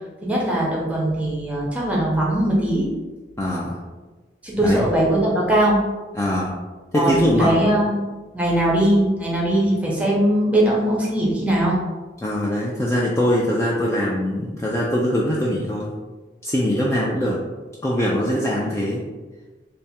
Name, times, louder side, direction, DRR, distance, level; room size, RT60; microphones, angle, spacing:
voice 1, 0.2-2.9 4.4-5.8 6.9-8.0 8.3-11.8, right 1 dB, 5° right, -4 dB, 0.7 m, -20 dB
voice 2, 3.4-3.8 4.6-4.8 6.1-6.5 6.9-7.6 12.2-15.9 16.4-17.4 17.8-19.0, left 1 dB, 15° left, -4 dB, 0.3 m, -22 dB
3.4 x 2.1 x 4.1 m, 1.3 s
head